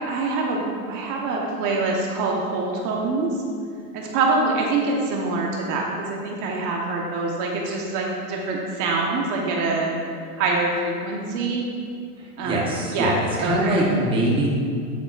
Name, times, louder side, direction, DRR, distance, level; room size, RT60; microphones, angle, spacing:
voice 1, 0.1-3.3 3.9-10.0 10.4-11.6 12.4-13.8, right 3 dB, 40° right, -1 dB, 1.1 m, -25 dB
voice 2, 12.2-14.5, right 1 dB, 10° right, -4 dB, 1.1 m, -23 dB
9.1 x 8.6 x 2.5 m, 2.3 s
supercardioid pair, 135°, 46 cm